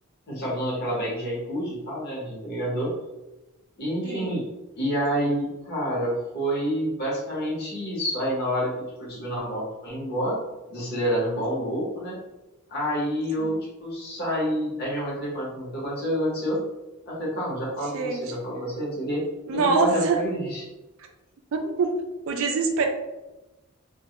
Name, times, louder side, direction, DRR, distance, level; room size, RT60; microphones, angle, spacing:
voice 1, 0.3-2.9 3.8-4.4 4.8-8.7 9.0-10.4 10.7-12.2 12.7-16.6 17.1-19.2 19.5-20.6, equal, 45° left, -5 dB, 0.9 m, -28 dB
voice 2, 19.5-20.2 21.5-22.0 22.3-22.9, right 4 dB, 65° right, 3 dB, 0.4 m, -24 dB
2.2 x 2.1 x 2.8 m, 1.0 s
head